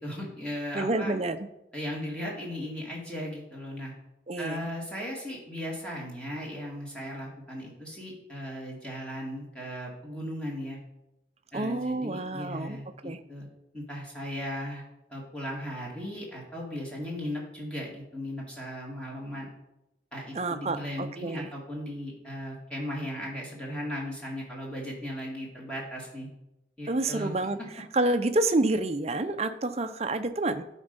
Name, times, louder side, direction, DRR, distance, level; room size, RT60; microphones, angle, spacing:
voice 1, 0.0-1.1 1.7-3.9 4.4-10.8 11.5-13.5 13.7-14.8 15.1-19.5 20.1-26.3 26.8-27.3, equal, 5° left, -3 dB, 2.1 m, -37 dB
voice 2, 0.7-1.5 4.3-4.7 11.5-12.8 13.0-13.2 20.3-21.5 26.9-30.6, right 2 dB, 35° right, 9 dB, 0.5 m, -28 dB
12.0 x 4.5 x 5.3 m, 0.90 s
head